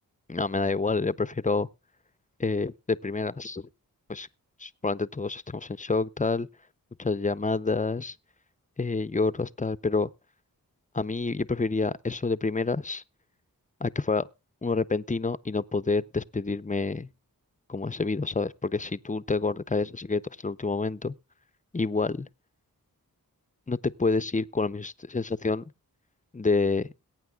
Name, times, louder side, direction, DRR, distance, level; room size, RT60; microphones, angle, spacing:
voice 1, 0.3-1.7 2.4-3.7 4.1-4.3 4.6-6.5 7.0-8.2 8.8-10.1 10.9-13.0 13.8-14.3 14.6-17.1 17.7-21.1 21.7-22.3 23.7-25.7 26.3-26.9, left 3 dB, 20° left, 0.6 m, -28 dB
21.5 x 9.1 x 2.3 m
cardioid pair, 45°, 37 cm